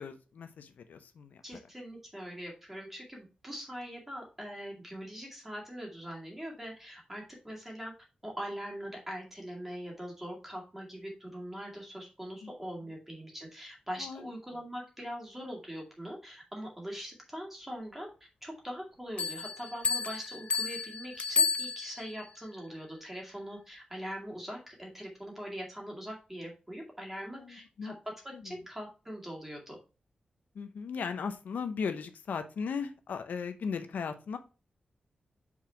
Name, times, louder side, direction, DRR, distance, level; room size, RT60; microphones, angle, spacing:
voice 1, 0.0-1.4 12.4-12.5 14.0-14.3 27.3-27.9 28.3-28.5 30.5-34.4, left 6 dB, 80° left, 9 dB, 0.7 m, -37 dB
voice 2, 1.4-7.9 8.2-18.1 18.4-27.9 28.4-29.8, equal, 10° right, -1 dB, 2.2 m, -42 dB
sound 1, 19.2-22.2, left 5 dB, 50° left, 0.4 m, -31 dB
5.5 x 4.8 x 4.5 m, 0.33 s
wide cardioid pair, 160°, 3 cm